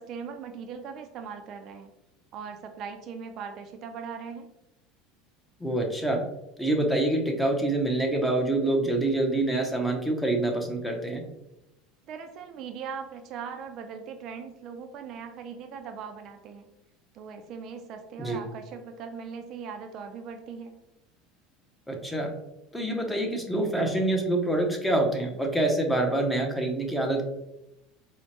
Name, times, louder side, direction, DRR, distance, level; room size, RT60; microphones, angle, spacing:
voice 1, 0.0-1.9 2.3-4.5 12.1-16.6 17.1-20.8, right 6 dB, 45° right, 6 dB, 0.3 m, -39 dB
voice 2, 5.6-6.2 6.6-11.2 18.2-18.4 21.9-22.3 22.7-27.2, right 1 dB, 5° left, 2 dB, 0.6 m, -26 dB
4.4 x 2.1 x 2.8 m, 0.87 s
supercardioid pair, 135°, 0 cm